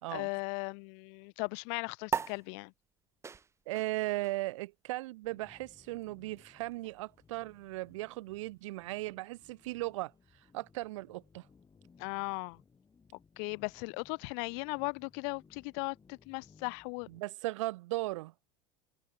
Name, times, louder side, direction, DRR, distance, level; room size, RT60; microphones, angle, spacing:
voice 1, 0.1-2.7 12.0-12.6 13.4-17.1, left 40 dB or more, 55° left, 0.9 m, -37 dB
sound 1, 2.1-8.9, right 5 dB, 15° right, 0.6 m, -43 dB
voice 2, 3.7-10.1 10.5-11.5 17.1-18.3, right 19 dB, 65° right, 1.9 m, -37 dB
sound 2, 5.3-17.2, left 5 dB, 20° left, 4.7 m, -63 dB
figure-of-eight pair, 75°, 17 cm